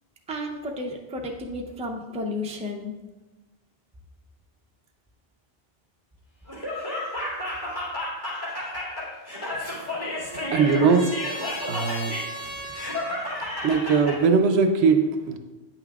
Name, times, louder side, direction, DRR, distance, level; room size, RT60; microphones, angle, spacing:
voice 1, 0.3-2.9 10.4-10.7, left 1 dB, 10° right, 1 dB, 0.4 m, -32 dB
Laughter, 6.5-14.2, left 1 dB, 50° left, 2.3 m, -32 dB
Trumpet, 9.4-13.2, right 1 dB, 90° left, 2.8 m, -38 dB
voice 2, 9.7-11.3 11.7-12.3 12.7-12.8 13.6-15.4, right 5 dB, 85° right, 7 dB, 0.9 m, -22 dB
9.3 x 5.8 x 2.3 m, 1.2 s
omnidirectional pair, 1.1 m